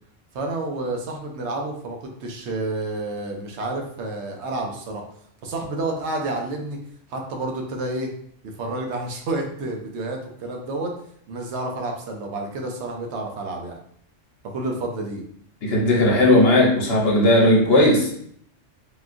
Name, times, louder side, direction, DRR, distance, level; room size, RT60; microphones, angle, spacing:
voice 1, 0.3-5.0 5.4-6.8 7.1-8.1 8.4-10.9 11.3-13.8 14.5-15.2, right 2 dB, 70° right, 2 dB, 0.8 m, -29 dB
voice 2, 15.6-18.1, left 1 dB, 60° left, -2 dB, 1.0 m, -17 dB
3.5 x 2.3 x 2.5 m, 0.65 s
omnidirectional pair, 1.3 m